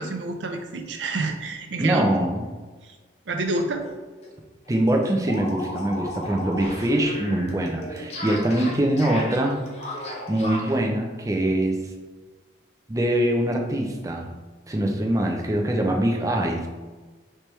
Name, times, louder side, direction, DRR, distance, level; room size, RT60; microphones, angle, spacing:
voice 1, 0.0-2.1 2.8-2.9 3.3-3.8, right 2 dB, 80° right, 5 dB, 0.6 m, -28 dB
voice 2, 1.8-2.5 4.7-9.6 10.3-11.8 12.9-14.3 14.7-16.6, right 1 dB, 20° right, 1 dB, 0.4 m, -23 dB
sound 1, 3.8-3.9 4.2-4.3 4.7-10.8, left 1 dB, 35° left, 0.6 m, -35 dB
4.5 x 3.4 x 3.1 m, 1.3 s
head